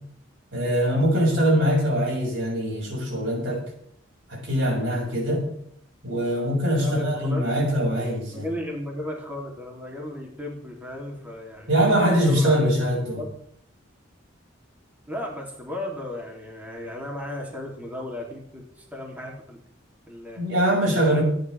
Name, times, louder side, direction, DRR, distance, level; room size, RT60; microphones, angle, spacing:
voice 1, 0.5-3.6 4.3-5.5 6.0-8.5 11.7-13.2 20.4-21.2, equal, 70° right, -1 dB, 6.9 m, -22 dB
voice 2, 6.8-7.7 8.3-11.7 12.2-13.3 15.1-19.6 20.1-20.4 20.8-21.2, left 1 dB, 10° right, -2 dB, 3.3 m, -35 dB
27.0 x 10.5 x 3.6 m, 0.68 s
head